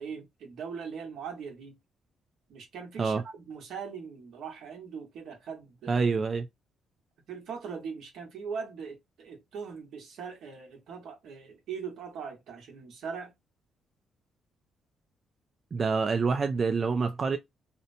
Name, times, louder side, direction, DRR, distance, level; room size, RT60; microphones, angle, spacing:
voice 1, 0.0-1.8 2.5-6.0 7.3-13.3, right 6 dB, 75° right, 1.1 m, -40 dB
voice 2, 5.9-6.5 15.7-17.4, right 4 dB, 40° right, 0.3 m, -26 dB
2.7 x 2.1 x 2.5 m
cardioid pair, 90°, 0 cm